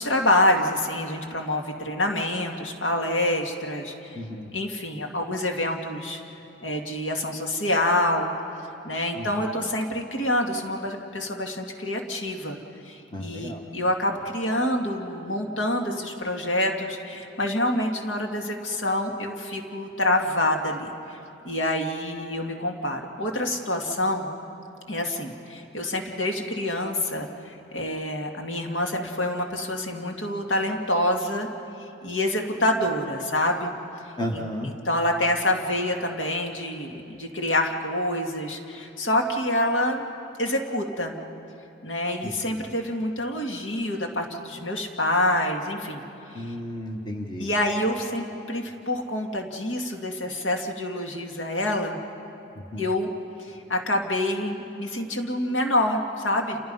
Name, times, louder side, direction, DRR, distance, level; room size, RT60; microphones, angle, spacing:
voice 1, 0.0-4.2 4.5-6.2 6.6-8.3 8.8-12.6 12.8-21.2 21.4-24.3 24.9-31.5 32.0-33.7 34.3-40.0 40.4-41.2 41.8-46.0 46.3-46.5 47.4-52.0 52.8-53.1 53.4-56.6, left 1 dB, 70° left, 2 dB, 2.2 m, -27 dB
voice 2, 4.1-4.5 9.2-9.3 13.1-13.6 34.2-34.7 42.4-42.6 46.3-47.5 52.7-52.8, left 1 dB, 25° left, 2 dB, 1.3 m, -33 dB
29.5 x 29.0 x 5.6 m, 3.0 s
head